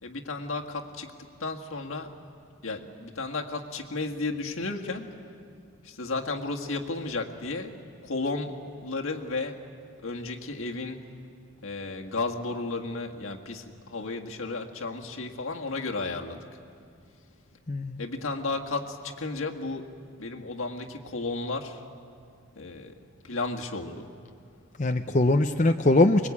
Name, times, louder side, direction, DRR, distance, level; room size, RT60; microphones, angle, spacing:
voice 1, 0.0-1.1 1.4-2.2 2.6-5.1 5.8-7.8 8.0-8.5 8.8-9.6 10.0-11.1 11.6-16.4 18.0-19.9 20.2-21.8 22.6-23.0 23.2-24.1, left 3 dB, 80° left, 2 dB, 1.8 m, -33 dB
voice 2, 17.7-18.1 24.8-26.3, left 2 dB, 35° left, 6 dB, 0.6 m, -22 dB
24.5 x 21.5 x 8.6 m, 2.4 s
head